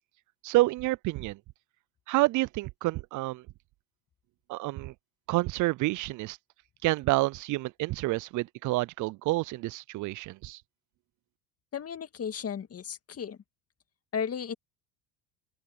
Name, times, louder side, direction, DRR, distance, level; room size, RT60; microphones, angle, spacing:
voice 1, 0.4-1.4 2.1-3.4 4.5-4.9 5.3-6.4 6.8-10.6, right 19 dB, 50° right, 0.5 m, -28 dB
voice 2, 11.7-13.4 14.1-14.5, left 7 dB, 35° left, 2.3 m, -34 dB
open air
supercardioid pair, 85°, 40 cm